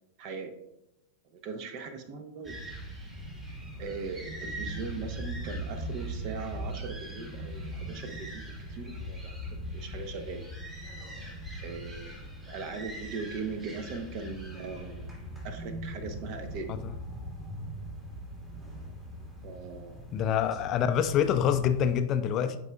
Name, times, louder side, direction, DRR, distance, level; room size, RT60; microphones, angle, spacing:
voice 1, 0.2-0.5 1.3-2.6 3.8-10.4 11.6-12.2 12.5-15.1 15.4-16.8 19.4-20.1, right 4 dB, 40° right, 8 dB, 0.8 m, -40 dB
sound 1, 2.4-22.0, right 1 dB, 15° right, 1.8 m, -40 dB
voice 2, 20.1-22.6, left 8 dB, 35° left, 10 dB, 0.4 m, -26 dB
11.0 x 4.8 x 2.3 m, 0.88 s
figure-of-eight pair, 90°, 0 cm